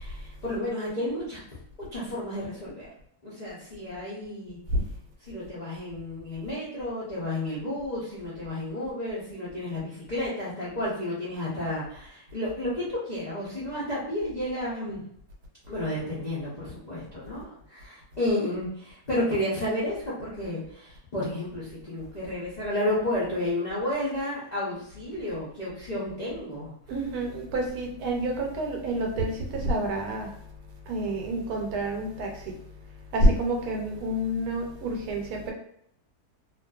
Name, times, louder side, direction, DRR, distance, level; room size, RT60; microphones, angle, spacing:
voice 1, 0.0-1.4 1.8-2.9 3.2-4.6 5.3-15.0 15.7-26.7, left 1 dB, 60° left, -9 dB, 0.4 m, -31 dB
voice 2, 26.9-30.3 30.9-32.5 33.1-35.5, right 1 dB, 75° right, 1 dB, 1.1 m, -28 dB
2.5 x 2.4 x 2.2 m, 0.70 s
omnidirectional pair, 1.7 m